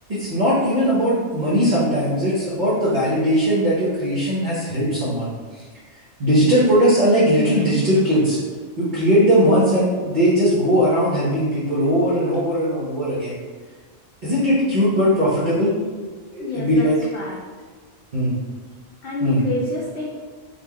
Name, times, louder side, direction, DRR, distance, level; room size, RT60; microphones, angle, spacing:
voice 1, 0.1-5.6 6.2-8.4 8.8-13.4 14.2-15.7 16.3-16.9 18.1-18.3 19.2-19.4, equal, 40° right, -11 dB, 1.0 m, -19 dB
voice 2, 16.4-17.4 19.0-20.0, left 2 dB, 60° left, -4 dB, 0.6 m, -27 dB
3.9 x 3.2 x 2.3 m, 1.4 s
omnidirectional pair, 1.3 m